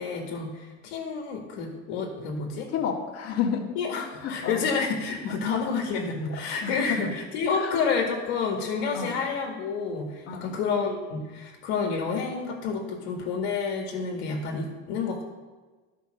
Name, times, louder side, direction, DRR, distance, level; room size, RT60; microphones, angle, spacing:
voice 1, 0.0-2.7 3.8-15.2, left 5 dB, 75° left, 0 dB, 1.9 m, -29 dB
voice 2, 2.7-3.6 4.2-4.6 6.6-7.1 7.5-7.8 8.9-9.1 10.3-10.6, left 7 dB, 50° left, 0 dB, 1.9 m, -30 dB
12.5 x 5.4 x 6.5 m, 1.3 s
supercardioid pair, 95°, 31 cm